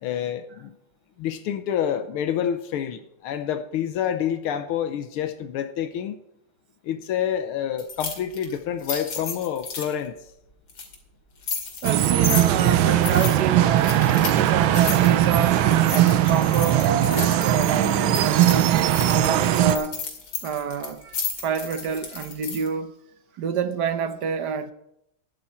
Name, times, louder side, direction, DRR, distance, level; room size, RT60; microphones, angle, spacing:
voice 1, 0.0-0.7 1.2-6.2 6.8-10.1, left 9 dB, 85° left, 1.7 m, -28 dB
sound 1, 7.8-9.9 10.7-10.9 11.4-12.6 13.0-13.3 13.8-14.4 14.7-22.7, left 5 dB, 60° left, 3.0 m, -33 dB
voice 2, 11.8-15.6 15.9-18.8 19.1-20.0 20.4-22.9 23.4-24.7, right 6 dB, 60° right, 1.3 m, -28 dB
sound 2, 11.8-19.8, right 12 dB, 75° right, 1.5 m, -19 dB
12.0 x 11.0 x 4.3 m
omnidirectional pair, 2.3 m